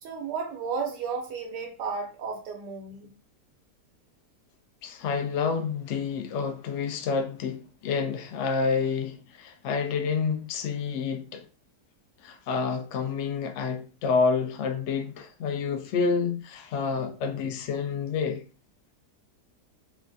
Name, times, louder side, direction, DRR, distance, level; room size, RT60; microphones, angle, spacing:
voice 1, 0.0-3.1, right 5 dB, 85° right, 1.2 m, -33 dB
voice 2, 4.8-11.4 12.2-18.4, left 5 dB, 75° left, 0.6 m, -28 dB
3.4 x 2.2 x 2.5 m
omnidirectional pair, 1.8 m